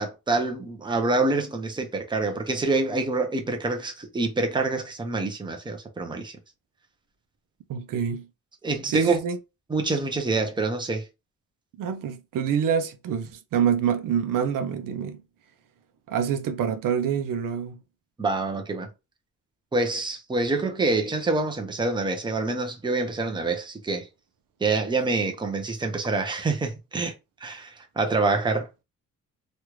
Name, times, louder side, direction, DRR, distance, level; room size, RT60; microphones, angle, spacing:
voice 1, 0.0-6.3 8.6-9.2 9.7-11.0 18.2-18.9 19.7-24.1 24.6-27.1 27.4-28.7, right 3 dB, 15° right, 0.7 m, -26 dB
voice 2, 7.7-8.3 8.9-9.4 11.8-15.2 16.1-17.8, right 7 dB, 80° right, 0.6 m, -26 dB
3.2 x 2.4 x 3.1 m
wide cardioid pair, 145°, 32 cm